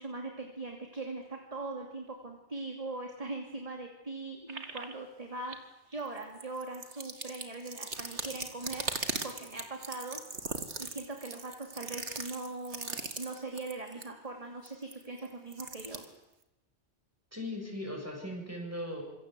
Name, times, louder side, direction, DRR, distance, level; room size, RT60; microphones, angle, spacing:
voice 1, 0.0-5.6 5.9-8.8 9.2-10.2 10.8-16.0, right 2 dB, 30° right, 3 dB, 2.8 m, -41 dB
sound 1, 4.5-4.9 5.5-5.6 5.9-14.1 14.7-16.0, right 3 dB, 75° right, 2.5 m, -39 dB
voice 2, 17.3-19.0, left 1 dB, 15° right, 1 dB, 7.8 m, -38 dB
26.5 x 23.0 x 8.3 m, 0.93 s
omnidirectional pair, 1.2 m